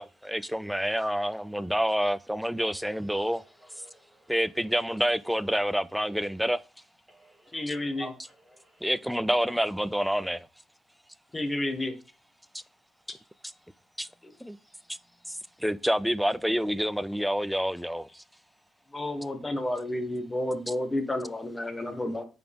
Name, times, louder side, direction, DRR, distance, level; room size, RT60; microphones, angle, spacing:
voice 1, 0.0-3.4 4.3-6.6 8.8-10.5 14.0-14.1 14.4-14.6 14.9-15.0 15.3-18.2, equal, ahead, 0.4 m, -28 dB
voice 2, 3.1-4.9 7.1-9.0, equal, 15° right, 3.5 m, -50 dB
voice 3, 7.5-8.1 11.3-11.9 14.2-14.3 18.9-22.3, left 1 dB, 20° left, 1.4 m, -31 dB
9.0 x 4.9 x 3.6 m
cardioid pair, 90°, 0 cm